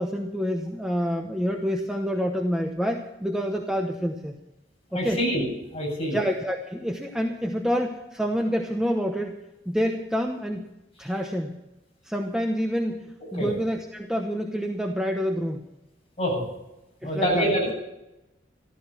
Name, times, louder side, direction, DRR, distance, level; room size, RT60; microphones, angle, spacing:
voice 1, 0.0-4.4 4.9-5.2 6.1-10.6 11.0-11.6 12.0-15.6 17.0-17.7, equal, 5° right, 2 dB, 0.9 m, -28 dB
voice 2, 4.9-6.2 13.4-13.5 16.2-16.5 17.0-17.8, equal, 35° left, -2 dB, 7.8 m, -26 dB
14.5 x 13.0 x 5.9 m, 0.93 s
head